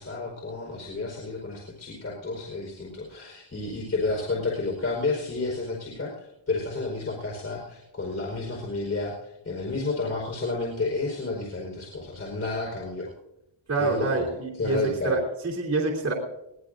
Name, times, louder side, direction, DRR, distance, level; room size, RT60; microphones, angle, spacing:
voice 1, 0.0-13.1 13.7-15.2, left 3 dB, 35° left, -3 dB, 4.5 m, -31 dB
voice 2, 13.7-14.8 15.0-16.1, right 3 dB, 35° right, -2 dB, 3.1 m, -26 dB
22.5 x 18.5 x 2.6 m, 0.86 s
wide cardioid pair, 155°, 46 cm